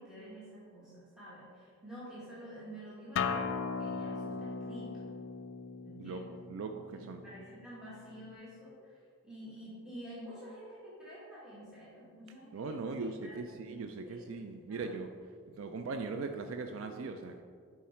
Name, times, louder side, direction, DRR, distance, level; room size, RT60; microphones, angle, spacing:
voice 1, 0.0-5.1 5.8-6.4 6.9-13.8 14.0-14.9, equal, 5° right, -10 dB, 1.5 m, -49 dB
Acoustic guitar, 3.2-8.3, left 5 dB, 55° left, 0.3 m, -38 dB
voice 2, 6.5-7.2 12.5-15.1 15.5-17.4, right 4 dB, 65° right, 6 dB, 0.4 m, -39 dB
7.3 x 4.7 x 4.3 m, 2.1 s
head